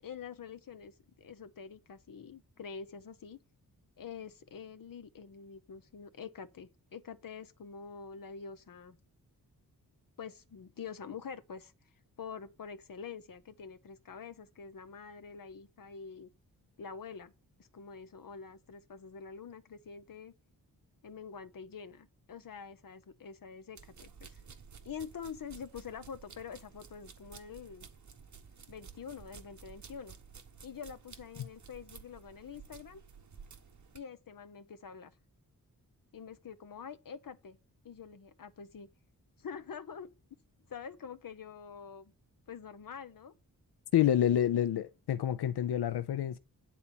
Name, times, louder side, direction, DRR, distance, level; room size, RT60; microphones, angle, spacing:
voice 1, 0.0-3.4 4.0-9.0 10.2-11.7 12.2-16.3 16.8-17.3 17.6-20.3 21.0-24.4 24.8-27.9 28.7-30.1 30.6-33.0 33.9-35.1 36.1-37.6 37.8-38.9 39.4-40.1 40.7-42.1 42.5-43.3, left 6 dB, 60° left, 0.9 m, -46 dB
sound 1, 23.8-34.0, right 6 dB, 50° right, 1.1 m, -53 dB
voice 2, 43.9-46.4, left 10 dB, 90° left, 0.6 m, -28 dB
9.8 x 4.2 x 7.0 m
wide cardioid pair, 170°, 38 cm